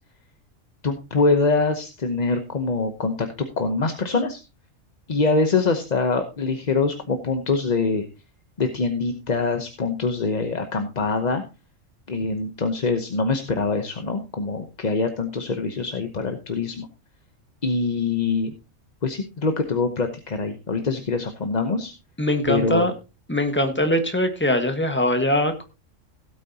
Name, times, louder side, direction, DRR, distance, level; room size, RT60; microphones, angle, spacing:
voice 1, 0.8-3.3 3.6-4.4 5.1-8.1 8.6-11.4 12.1-16.9 17.6-18.6 19.0-21.9 22.5-22.9, left 3 dB, 35° left, 6 dB, 0.9 m, -24 dB
voice 2, 22.2-22.9 23.3-25.6, left 1 dB, 10° left, 6 dB, 1.4 m, -22 dB
16.5 x 8.6 x 2.8 m, 0.28 s
omnidirectional pair, 1.3 m